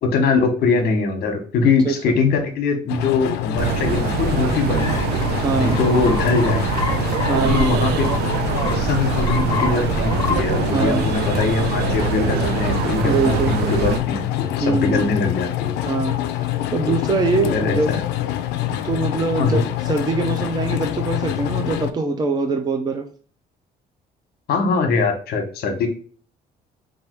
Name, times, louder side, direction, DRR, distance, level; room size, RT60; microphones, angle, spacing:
voice 1, 0.0-5.1 5.6-6.7 7.3-8.0 8.7-15.7 16.8-17.0 17.4-18.0 19.4-19.6 24.5-25.9, left 4 dB, 65° left, 5 dB, 1.1 m, -22 dB
voice 2, 1.6-2.2 5.4-5.8 7.2-7.7 10.7-11.1 13.0-13.5 14.6-15.1 15.9-17.9 18.7-23.0, right 3 dB, 25° right, 4 dB, 0.6 m, -23 dB
sound 1, 2.9-21.9, left 13 dB, 90° left, 0.4 m, -26 dB
sound 2, 3.6-14.0, right 9 dB, 75° right, 0.4 m, -24 dB
sound 3, 4.8-10.4, left 4 dB, 20° left, 1.2 m, -29 dB
3.3 x 2.6 x 4.4 m, 0.43 s
cardioid pair, 110°, 17 cm